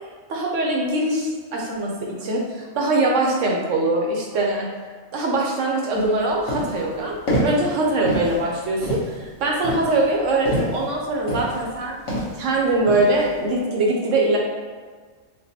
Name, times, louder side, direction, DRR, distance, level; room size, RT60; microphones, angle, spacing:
voice 1, 0.3-1.9 2.2-4.7 5.1-7.1 7.4-9.0 9.4-12.0 12.4-14.4, right 2 dB, 70° right, -1 dB, 0.9 m, -22 dB
sound 1, 5.9-6.1 6.5-6.9 7.3-7.7 8.1-8.4 8.8-9.2 9.6-10.9 11.3-11.7 12.1-12.4 12.9-13.3, equal, 80° left, 1.4 m, -26 dB
4.5 x 2.1 x 2.7 m, 1.5 s
omnidirectional pair, 1.4 m